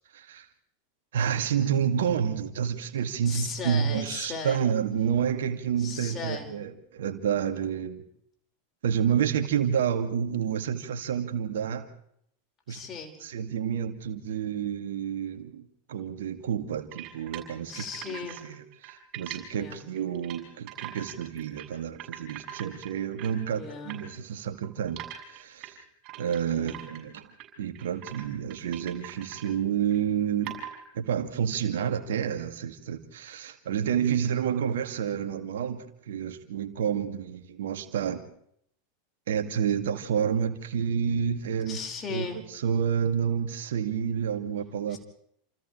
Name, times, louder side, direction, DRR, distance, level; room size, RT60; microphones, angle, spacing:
voice 1, 0.1-0.5 1.1-8.0 8.8-11.9 12.7-12.8 13.2-25.0 25.3-25.8 26.2-27.3 27.6-30.6 30.9-38.3 39.3-41.8 42.1-42.3 42.5-45.0, right 8 dB, 65° right, 7 dB, 2.2 m, -29 dB
voice 2, 3.3-4.6 5.8-6.5 12.7-13.1 17.7-18.4 19.5-19.8 23.5-24.0 26.5-26.9 41.7-42.4 44.9-45.0, left 5 dB, 30° left, 2 dB, 5.2 m, -37 dB
sound 1, 16.9-18.4 18.7-19.4 20.0-20.4 20.7-21.7 22.0-23.4 23.9-24.0 24.6-27.5 27.8-28.2 28.5-29.5 29.9-30.0 30.4-30.8, right 12 dB, 45° right, 7.5 m, -41 dB
29.0 x 28.0 x 3.3 m, 0.69 s
figure-of-eight pair, 85°, 0 cm